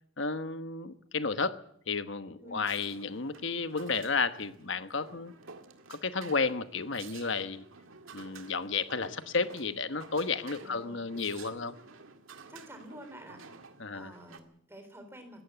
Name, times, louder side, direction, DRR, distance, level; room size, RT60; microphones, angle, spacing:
voice 1, 0.2-1.6 1.9-5.3 5.9-7.6 8.1-11.7 13.8-14.1, left 4 dB, 65° left, 11 dB, 1.2 m, -32 dB
sound 1, 2.6-14.4, right 4 dB, 80° right, 1.9 m, -52 dB
voice 2, 10.6-11.1 12.5-13.4 13.9-15.4, right 1 dB, 10° right, 6 dB, 3.8 m, -49 dB
21.0 x 15.5 x 8.1 m, 0.68 s
head